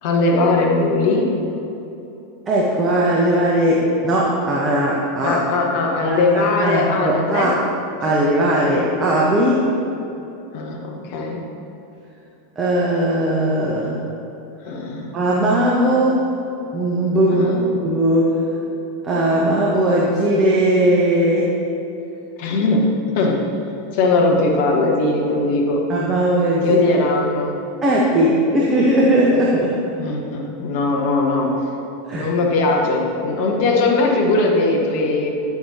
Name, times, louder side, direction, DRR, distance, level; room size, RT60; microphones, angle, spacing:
voice 1, 0.0-1.3 5.2-7.5 10.5-11.4 14.7-15.1 17.3-17.6 22.4-22.9 23.1-23.5 23.9-25.8 26.6-27.5 30.0-31.5 32.1-35.3, left 3 dB, 55° left, 0 dB, 1.4 m, -19 dB
voice 2, 2.5-5.4 6.0-7.6 8.0-9.7 12.6-14.0 15.1-16.2 16.7-17.5 17.8-18.4 19.0-21.5 25.9-26.8 27.8-29.8 32.0-32.3, right 1 dB, 25° right, -4 dB, 1.3 m, -18 dB
9.6 x 9.3 x 2.9 m, 2.9 s
figure-of-eight pair, 85°, 0 cm